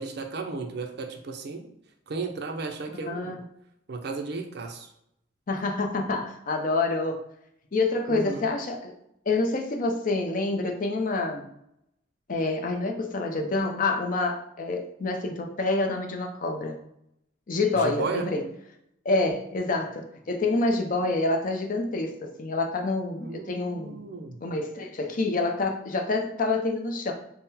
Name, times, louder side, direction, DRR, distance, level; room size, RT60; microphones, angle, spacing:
voice 1, 0.0-1.7 2.1-3.4 3.9-4.9 8.1-8.4 17.7-18.2 23.2-24.4, right 4 dB, 55° right, 4 dB, 0.5 m, -34 dB
voice 2, 3.0-3.4 5.5-7.2 7.7-8.9 9.3-11.5 12.3-16.8 17.5-18.4 19.0-24.0 24.4-27.1, left 3 dB, 45° left, 3 dB, 0.5 m, -27 dB
3.7 x 2.1 x 4.1 m, 0.76 s
head